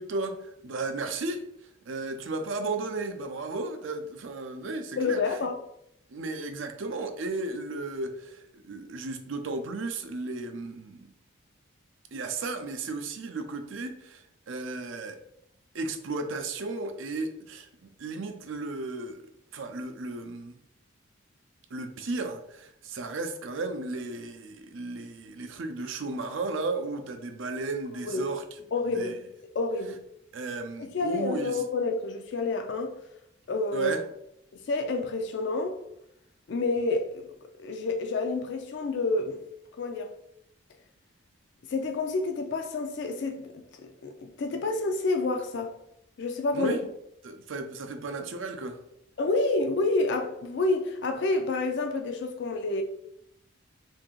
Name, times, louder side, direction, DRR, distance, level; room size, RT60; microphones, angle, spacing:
voice 1, 0.0-1.5 1.9-5.4 6.1-11.1 12.1-15.2 15.7-19.2 19.5-20.6 21.7-28.4 28.9-29.1 30.3-31.6 33.7-34.0 46.5-46.8 47.2-48.8, right 3 dB, 70° right, 0.5 m, -34 dB
voice 2, 5.0-5.6 28.1-28.2 28.7-29.2 29.5-30.0 30.8-32.9 33.5-33.9 34.5-35.8 36.5-37.3 37.6-39.4 39.8-40.1 41.7-45.7 46.2-46.8 49.2-52.8, left 3 dB, 60° left, 0.4 m, -29 dB
2.8 x 2.6 x 3.7 m
head